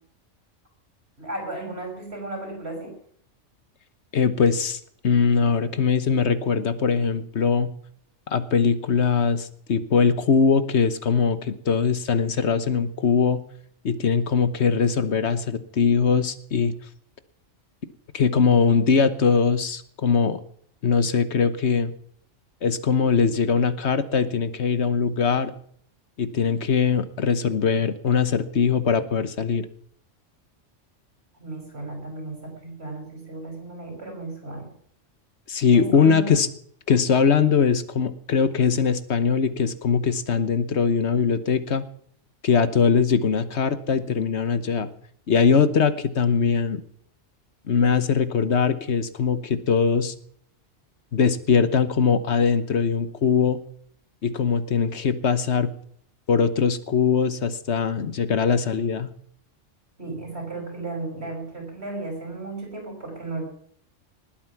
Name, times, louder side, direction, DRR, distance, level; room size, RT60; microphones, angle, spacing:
voice 1, 1.2-2.9 31.4-34.7 35.7-36.4 60.0-63.4, right 2 dB, 60° right, 2 dB, 6.0 m, -34 dB
voice 2, 4.1-7.7 8.3-13.4 13.8-16.7 18.1-20.4 20.8-21.9 22.6-25.5 26.2-29.7 35.5-36.5 36.9-41.9 42.4-44.9 45.3-46.8 47.7-50.1 51.1-53.6 54.2-55.7 56.3-59.1, left 6 dB, 65° left, 13 dB, 1.4 m, -21 dB
19.5 x 8.8 x 5.9 m, 0.63 s
omnidirectional pair, 1.2 m